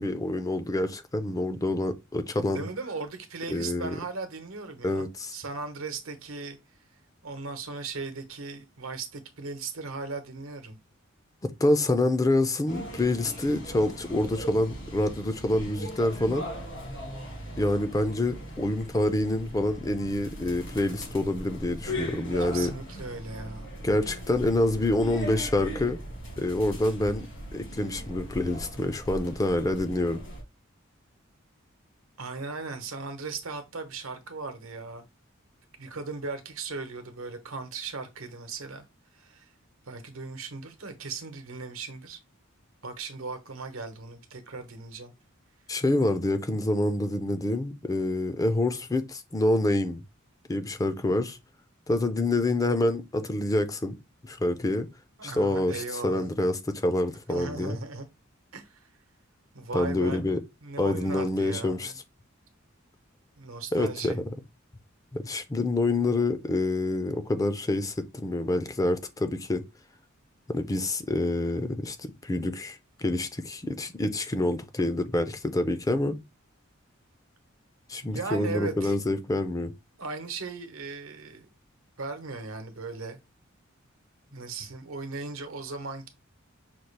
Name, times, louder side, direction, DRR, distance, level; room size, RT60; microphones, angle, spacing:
voice 1, 0.0-2.7 3.5-4.0 4.8-5.4 11.4-16.5 17.6-22.7 23.8-26.0 26.4-27.3 27.5-30.2 45.7-50.0 50.5-51.4 51.9-54.0 54.2-54.9 55.2-57.8 59.7-60.4 60.8-61.9 63.7-64.2 65.1-69.6 70.5-76.1 77.9-79.7, left 2 dB, 15° left, 0.4 m, -27 dB
voice 2, 2.5-6.6 7.2-10.8 22.4-23.7 32.2-35.0 35.8-38.8 39.1-39.5 39.9-42.2 42.8-45.1 55.2-56.3 57.3-58.1 58.5-58.9 59.5-60.2 60.6-62.0 63.4-64.2 78.0-78.9 80.0-81.5 82.0-83.2 84.3-86.1, right 4 dB, 85° right, 1.0 m, -37 dB
sound 1, 12.7-30.4, equal, 65° left, 1.6 m, -39 dB
5.8 x 2.4 x 3.2 m
head